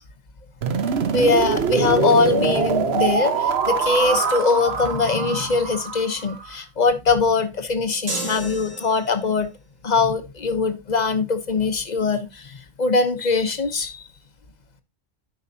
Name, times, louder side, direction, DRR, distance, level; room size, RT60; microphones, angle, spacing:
sound 1, 0.6-6.5, right 6 dB, 55° right, 1.1 m, -24 dB
voice 1, 1.0-9.5 9.8-14.0, left 4 dB, 35° left, 1.0 m, -22 dB
sound 2, 8.1-9.4, right 2 dB, 85° right, 2.9 m, -32 dB
13.5 x 5.5 x 2.8 m
omnidirectional pair, 1.3 m